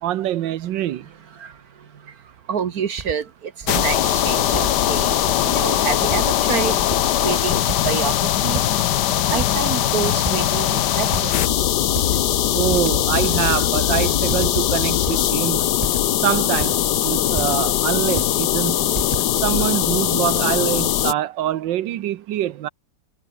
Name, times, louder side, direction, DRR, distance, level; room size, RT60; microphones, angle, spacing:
voice 1, 0.0-1.1 12.5-15.7 16.2-19.0 19.4-22.7, right 12 dB, 75° right, 1.5 m, -24 dB
voice 2, 0.8-2.1 2.5-8.8 9.3-11.6, right 7 dB, 55° right, 1.5 m, -28 dB
sound 1, 2.6-2.7 3.0-3.2 3.6-3.9 4.5-4.8 5.2-5.7 6.1-6.5 6.8-7.3 7.7-8.1 8.4-9.1 9.4-9.9 10.2-10.4 11.1-11.5 11.8-12.1 12.7-13.2 13.5-13.6 14.3-14.6 15.1-15.3 15.8-16.1 16.5-17.7 18.0-18.4 18.9-19.6, right 4 dB, 25° right, 1.1 m, -33 dB
sound 2, 3.7-21.1, left 12 dB, 65° left, 1.4 m, -20 dB
omnidirectional pair, 2.1 m